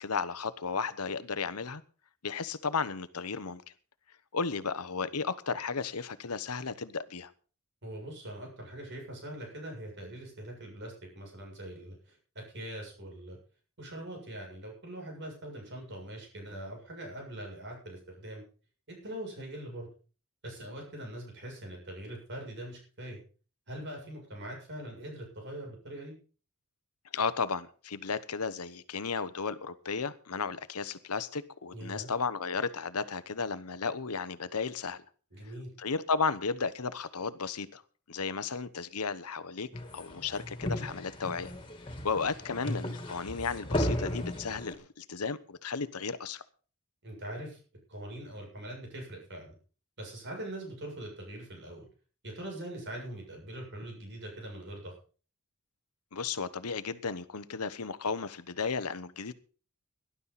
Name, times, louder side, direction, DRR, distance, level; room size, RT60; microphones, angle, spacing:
voice 1, 0.0-1.8 2.2-3.6 4.3-7.3 27.1-35.0 35.8-37.8 38.1-39.7 39.9-41.5 42.0-46.4 56.1-59.3, left 5 dB, 90° left, 14 dB, 1.0 m, -34 dB
voice 2, 7.8-13.4 13.8-18.4 18.9-19.9 20.4-23.2 23.7-26.1 31.7-32.1 35.3-35.7 47.0-47.6 47.9-49.5 50.0-51.9 52.2-54.9, right 1 dB, 55° right, 0 dB, 7.3 m, -42 dB
sound 1, 39.7-44.7, left 1 dB, 25° left, 3.0 m, -35 dB
18.5 x 11.5 x 4.2 m, 0.39 s
head